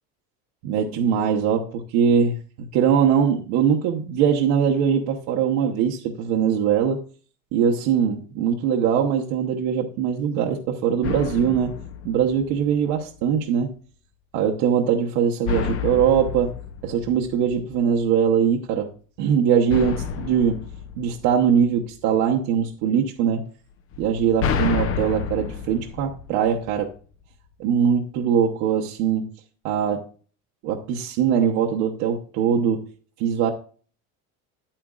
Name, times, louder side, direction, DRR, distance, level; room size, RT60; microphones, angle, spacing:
voice 1, 0.6-7.0 7.5-11.7 12.0-13.7 14.3-16.5 16.8-18.9 19.2-20.6 21.0-23.4 24.0-26.9 27.6-29.3 29.6-30.1 30.6-32.8 33.2-33.5, right 8 dB, 75° right, -1 dB, 1.1 m, -21 dB
sound 1, 11.0-12.9 15.5-17.9 19.7-22.0 23.9-27.0, left 6 dB, 40° left, 0.7 m, -30 dB
10.0 x 8.8 x 2.4 m, 0.41 s
cardioid pair, 175°, 34 cm